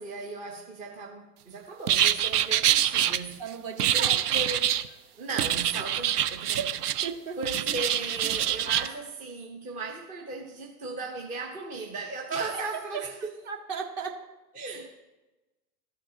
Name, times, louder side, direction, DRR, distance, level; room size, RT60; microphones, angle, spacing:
voice 1, 0.0-3.4 3.9-4.7 5.2-6.7 7.4-13.4 14.5-15.0, right 3 dB, 15° right, 0.6 m, -36 dB
sound 1, 1.9-3.2 3.8-4.9 5.4-7.1 7.4-8.9, right 11 dB, 70° right, 0.6 m, -25 dB
voice 2, 3.4-4.4 7.0-7.4 12.5-12.6 12.9-13.0 13.5-14.3, right 6 dB, 40° right, 1.4 m, -36 dB
13.5 x 4.5 x 2.7 m
hypercardioid pair, 100°, 49 cm